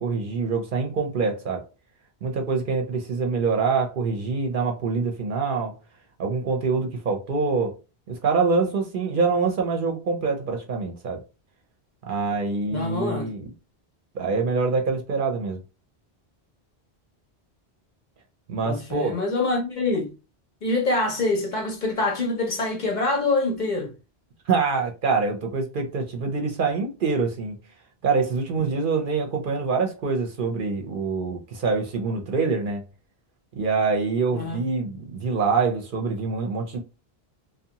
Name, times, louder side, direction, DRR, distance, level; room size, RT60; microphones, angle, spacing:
voice 1, 0.0-1.6 2.2-5.7 6.2-7.8 8.1-11.2 12.1-13.5 14.1-15.6 18.5-19.1 24.5-27.6 28.0-32.8 33.5-36.8, right 4 dB, 60° right, 0.7 m, -25 dB
voice 2, 12.7-13.3 18.6-20.1 20.6-23.9 28.6-28.7 34.3-34.6, left 2 dB, 50° left, 0.7 m, -25 dB
2.6 x 2.2 x 2.7 m
omnidirectional pair, 1.1 m